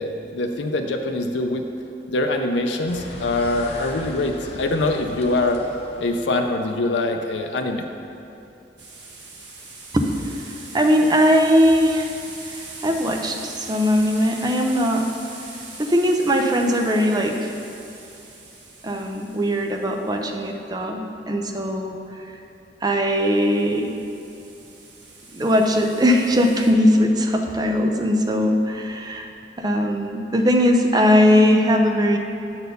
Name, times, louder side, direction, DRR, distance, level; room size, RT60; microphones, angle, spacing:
voice 1, 0.0-1.6 2.1-5.6 6.0-7.8, left 2 dB, 90° left, 4 dB, 0.5 m, -23 dB
sound 1, 2.9-6.7, left 1 dB, 35° left, 0.9 m, -37 dB
sound 2, 8.8-20.2 23.2-26.7, right 3 dB, 90° right, 1.4 m, -41 dB
voice 2, 9.9-15.1 15.8-17.5 18.8-22.2 22.8-23.9 25.3-29.3 29.6-32.2, equal, 20° right, 3 dB, 0.5 m, -20 dB
7.9 x 4.3 x 6.7 m, 2.7 s
head